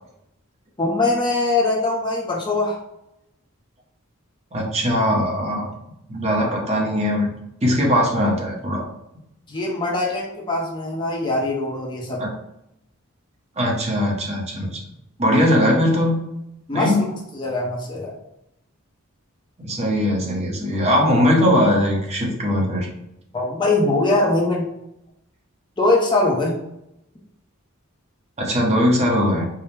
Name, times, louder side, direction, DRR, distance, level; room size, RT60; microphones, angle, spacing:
voice 1, 0.8-2.8 9.5-12.2 16.7-18.1 23.3-24.7 25.8-26.5, left 2 dB, 20° left, -2 dB, 0.6 m, -22 dB
voice 2, 4.5-5.7 6.1-7.3 7.6-8.8 12.2-12.3 13.6-14.8 15.2-16.2 16.7-17.0 19.6-22.9 28.4-29.5, equal, 30° right, -2 dB, 0.8 m, -20 dB
4.6 x 2.1 x 3.2 m, 0.82 s
head